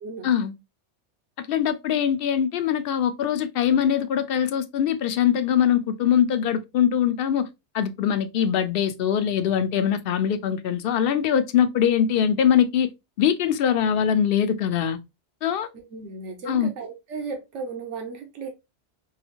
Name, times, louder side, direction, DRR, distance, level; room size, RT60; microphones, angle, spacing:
voice 1, 0.2-0.5 1.5-7.5 7.7-12.9 13.2-15.0 15.4-15.7 16.5-16.7, left 9 dB, 60° left, 0.7 m, -22 dB
voice 2, 15.7-18.5, right 4 dB, 90° right, 1.1 m, -35 dB
4.8 x 2.6 x 2.8 m
omnidirectional pair, 1.2 m